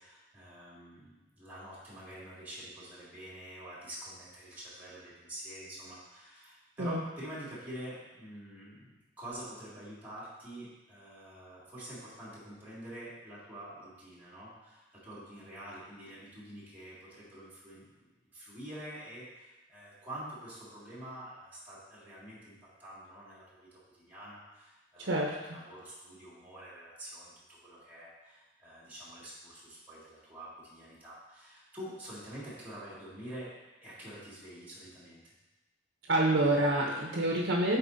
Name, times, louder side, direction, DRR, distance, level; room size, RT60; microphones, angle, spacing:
voice 1, 0.0-22.5 22.8-25.1 25.5-33.5 33.8-35.4, right 1 dB, 10° right, -9 dB, 2.2 m, -47 dB
voice 2, 25.0-25.4 36.0-37.8, right 1 dB, 85° right, -1 dB, 0.8 m, -27 dB
9.0 x 4.2 x 2.7 m, 1.1 s
head